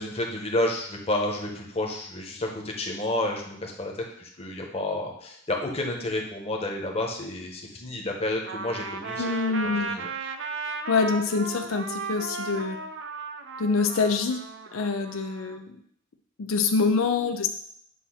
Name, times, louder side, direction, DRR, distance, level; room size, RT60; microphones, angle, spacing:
voice 1, 0.0-9.3 9.8-10.1, left 1 dB, 30° left, 1 dB, 1.1 m, -30 dB
Trumpet, 8.5-15.6, right 3 dB, 60° right, 0.5 m, -35 dB
voice 2, 9.2-10.0 10.9-12.8 13.6-14.4 14.7-15.7 16.4-17.5, left 4 dB, 85° left, 6 dB, 0.5 m, -25 dB
8.3 x 2.8 x 5.7 m, 0.65 s
head